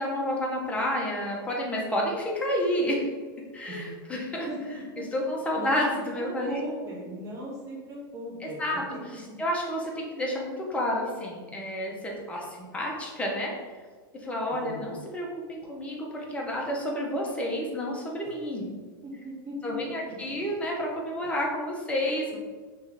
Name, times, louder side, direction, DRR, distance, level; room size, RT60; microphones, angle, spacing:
voice 1, 0.0-3.1 3.5-4.5 5.1-6.6 8.4-8.8 9.4-13.5 14.2-18.8 19.6-22.4, left 1 dB, 10° left, -2 dB, 0.8 m, -30 dB
voice 2, 4.5-5.1 5.6-9.4 14.5-15.0 19.0-20.4, equal, 25° right, -4 dB, 1.2 m, -38 dB
3.2 x 3.0 x 3.9 m, 1.5 s
hypercardioid pair, 125°, 12 cm